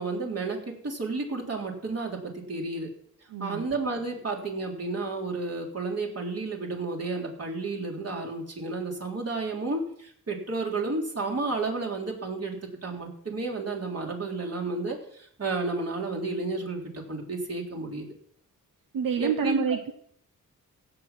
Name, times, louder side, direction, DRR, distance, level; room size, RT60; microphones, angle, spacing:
voice 1, 0.0-2.9 3.4-18.1 19.2-19.6, right 3 dB, 45° right, 0 dB, 3.6 m, -32 dB
voice 2, 3.3-3.7 18.9-19.9, right 7 dB, 80° right, 7 dB, 1.0 m, -27 dB
16.5 x 7.9 x 5.9 m, 0.65 s
cardioid pair, 95°, 33 cm